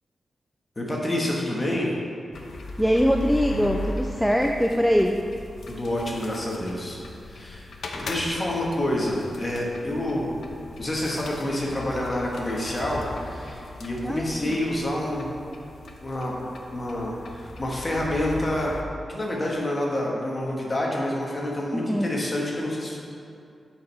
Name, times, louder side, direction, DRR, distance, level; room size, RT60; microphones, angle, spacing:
voice 1, 0.8-1.9 5.7-10.3 10.8-15.4 16.0-16.3 16.7-18.7 19.1-23.0, left 1 dB, 25° left, -3 dB, 1.4 m, -28 dB
sound 1, 2.3-18.8, left 2 dB, 65° left, 0.7 m, -38 dB
voice 2, 2.8-5.2 14.0-14.6 21.7-22.1, equal, ahead, 2 dB, 0.3 m, -22 dB
7.6 x 4.6 x 5.4 m, 2.4 s
wide cardioid pair, 145°, 0 cm